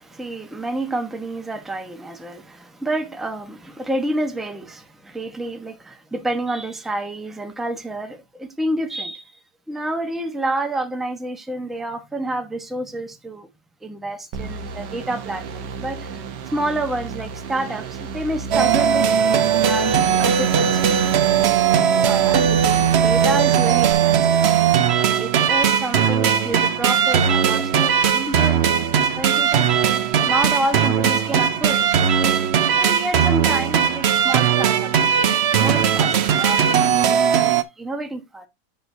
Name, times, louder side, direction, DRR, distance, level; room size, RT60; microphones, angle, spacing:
voice 1, 0.0-9.4 9.7-13.5 13.8-21.0 21.4-21.5 22.0-24.6 25.1-28.7 29.2-29.7 30.3-31.9 32.8-38.5, right 1 dB, ahead, 0.7 m, -29 dB
sound 1, 14.3-23.9, right 5 dB, 80° right, 1.5 m, -33 dB
sound 2, 18.5-37.6, right 8 dB, 60° right, 0.7 m, -18 dB
8.8 x 6.1 x 2.7 m
omnidirectional pair, 1.9 m